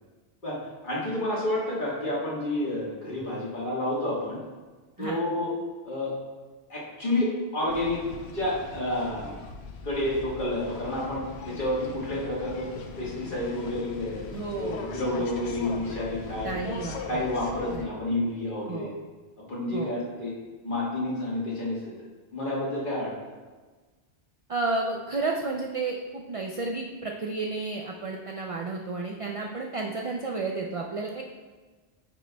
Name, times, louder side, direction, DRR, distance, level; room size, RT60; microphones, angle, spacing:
voice 1, 0.4-4.4 5.0-5.5 5.8-6.1 6.7-8.0 8.3-9.4 9.8-12.7 13.0-14.2 14.6-16.8 17.1-18.9 19.4-20.3 20.6-21.9 22.3-23.1, left 1 dB, 50° left, -6 dB, 1.7 m, -30 dB
sound 1, 7.7-17.8, left 4 dB, 80° left, 0.9 m, -40 dB
voice 2, 14.3-14.8 16.4-17.3 17.7-17.9 18.7-18.9 19.7-20.0 24.5-31.2, right 3 dB, 50° right, 0 dB, 0.4 m, -32 dB
9.6 x 5.1 x 2.3 m, 1.3 s
omnidirectional pair, 1.1 m